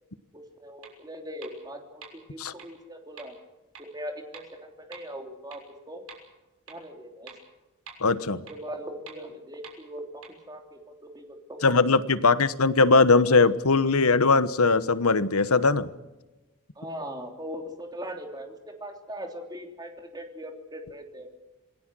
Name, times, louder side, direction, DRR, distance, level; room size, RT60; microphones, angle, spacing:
voice 1, 0.3-3.3 3.8-6.0 6.7-7.4 8.3-11.2 11.5-12.5 16.7-18.5 18.8-21.3, equal, 20° right, 4 dB, 3.2 m, -40 dB
sound 1, 0.8-0.9 1.4-1.5 2.0-2.1 2.6-2.7 3.2-3.3 3.7-3.8 4.3-4.4 4.9-5.0 5.5-5.6 6.1-6.2 6.7-6.8 7.3-7.4 7.9-8.0 8.5-8.6 9.1-9.2 9.6-9.7 10.2-10.3, right 6 dB, 75° right, 6.5 m, -44 dB
voice 2, 8.0-8.4 11.6-15.9, left 4 dB, 85° left, 14 dB, 1.2 m, -20 dB
27.5 x 19.5 x 6.3 m, 1.1 s
head